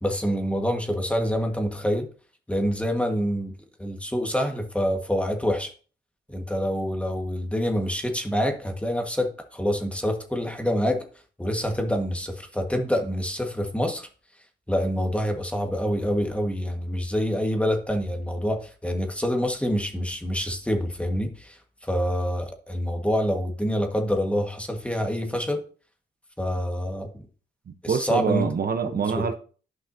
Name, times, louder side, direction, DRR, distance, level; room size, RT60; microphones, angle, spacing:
voice 1, 0.0-2.1 2.5-3.5 3.8-5.7 6.3-11.0 11.4-14.1 14.7-21.6 21.8-25.6 26.4-27.2 27.8-28.5 28.8-29.2, equal, 5° left, 1.5 m, -26 dB
voice 2, 27.9-29.4, right 6 dB, 55° right, 0.8 m, -25 dB
11.5 x 5.7 x 2.7 m
cardioid pair, 80°, 19 cm